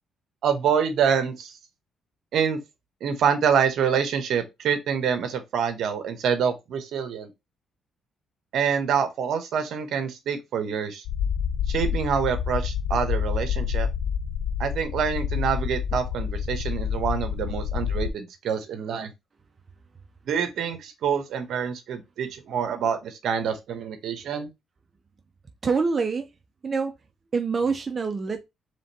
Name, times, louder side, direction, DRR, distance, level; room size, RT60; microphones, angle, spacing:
voice 1, 0.4-1.5 2.3-2.6 3.0-7.3 8.5-11.0 11.7-13.9 14.6-19.1 20.3-24.5, right 7 dB, 75° right, 1.0 m, -26 dB
sound 1, 11.1-18.1, left 7 dB, 85° left, 0.4 m, -28 dB
voice 2, 25.6-26.3 26.6-26.9 27.3-28.4, right 5 dB, 35° right, 0.6 m, -25 dB
5.0 x 3.4 x 2.8 m
cardioid pair, 90°, 0 cm